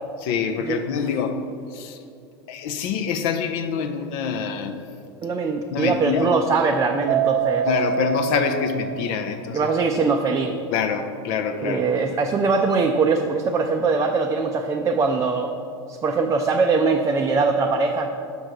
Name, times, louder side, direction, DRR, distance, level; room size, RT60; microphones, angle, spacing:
voice 1, 0.2-1.4 1.7-2.0 2.5-4.8 5.7-6.4 7.7-9.7 10.7-12.1, left 6 dB, 60° left, 8 dB, 0.6 m, -26 dB
voice 2, 5.2-7.7 9.5-10.5 11.6-15.5 15.9-18.1, right 4 dB, 25° right, 3 dB, 0.4 m, -22 dB
Keyboard (musical), 7.1-9.6, right 8 dB, 75° right, 0.6 m, -26 dB
6.2 x 5.3 x 4.7 m, 2.5 s
hypercardioid pair, 90°, 14 cm